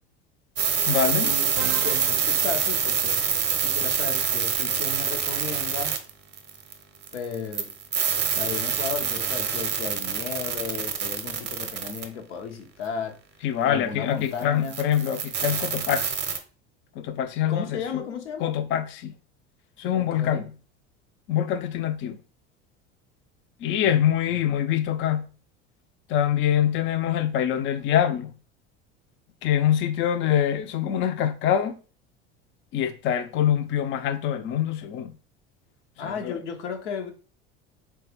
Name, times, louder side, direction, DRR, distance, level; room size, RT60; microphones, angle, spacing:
sound 1, 0.6-6.7 7.0-12.0 14.4-14.5 14.7-16.4, right 7 dB, 30° right, 0.6 m, -26 dB
voice 1, 0.9-1.3 13.4-16.1 17.0-18.0 18.4-19.1 19.8-20.5 21.3-22.2 23.6-25.3 26.1-28.3 29.4-31.8 32.7-35.1 36.0-36.4, left 10 dB, 35° left, 0.4 m, -25 dB
Musical instrument, 1.6-3.7, right 9 dB, 85° right, 0.5 m, -38 dB
voice 2, 1.8-3.2 3.6-5.9 7.1-7.7 8.4-13.2 13.6-14.8 17.5-18.6 19.9-20.4 23.8-23.9 36.0-37.1, left 6 dB, 85° left, 0.7 m, -34 dB
3.2 x 2.3 x 2.9 m
hypercardioid pair, 80°, 34 cm